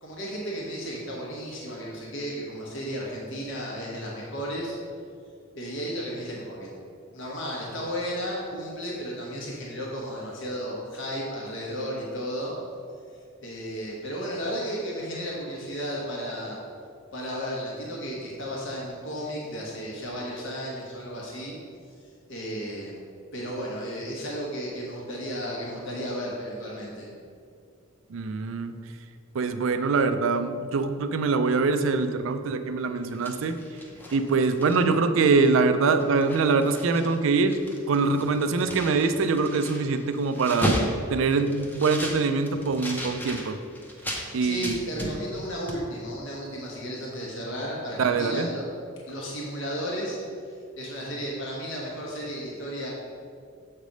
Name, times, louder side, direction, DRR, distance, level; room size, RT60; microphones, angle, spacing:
voice 1, 0.0-4.8 5.5-6.7 7.1-12.5 13.4-16.6 17.1-21.6 22.3-23.0 23.3-27.1 44.1-48.7 49.1-50.2 50.8-52.9, equal, 60° left, -4 dB, 1.1 m, -34 dB
voice 2, 28.1-28.7 29.3-33.6 34.1-37.6 37.9-40.7 41.1-43.6 44.3-44.7 48.0-48.5, right 4 dB, 65° right, 9 dB, 0.4 m, -24 dB
sound 1, 33.0-35.0 35.5-35.6 35.9-37.2 37.4-44.3 44.6-45.4 45.7-45.8, equal, 10° left, 0.7 m, -34 dB
7.2 x 3.3 x 5.2 m, 2.3 s
head